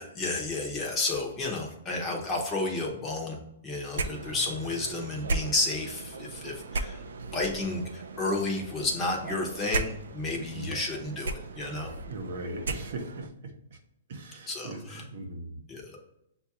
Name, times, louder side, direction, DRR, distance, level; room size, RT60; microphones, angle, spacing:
voice 1, 0.0-3.4 3.6-7.0 7.3-11.9 14.5-15.0 15.7-16.0, left 2 dB, 15° left, 0 dB, 0.7 m, -31 dB
sound 1, 3.9-13.3, right 3 dB, 90° right, 0.4 m, -36 dB
voice 2, 10.3-10.8 12.1-13.8 14.1-15.6, right 2 dB, 55° right, 3 dB, 0.8 m, -39 dB
6.5 x 2.3 x 2.9 m, 0.83 s
hypercardioid pair, 165°, 0 cm